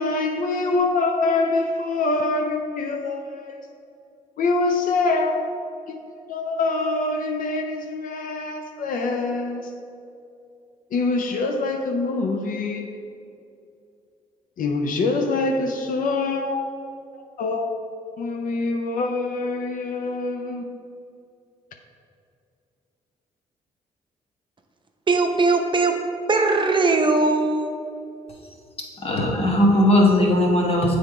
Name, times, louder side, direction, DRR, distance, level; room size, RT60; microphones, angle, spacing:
voice 1, 0.0-3.6 4.4-5.6 5.9-6.0 6.3-9.7 10.9-12.9 14.6-16.7 17.1-17.7 18.2-20.8, left 3 dB, 65° left, 4 dB, 0.6 m, -25 dB
voice 2, 25.1-26.0 26.3-27.8, right 3 dB, 30° right, 3 dB, 0.7 m, -20 dB
voice 3, 29.0-31.0, left 1 dB, 40° left, -1 dB, 1.3 m, -18 dB
7.4 x 3.4 x 4.9 m, 2.5 s
supercardioid pair, 70°, 15 cm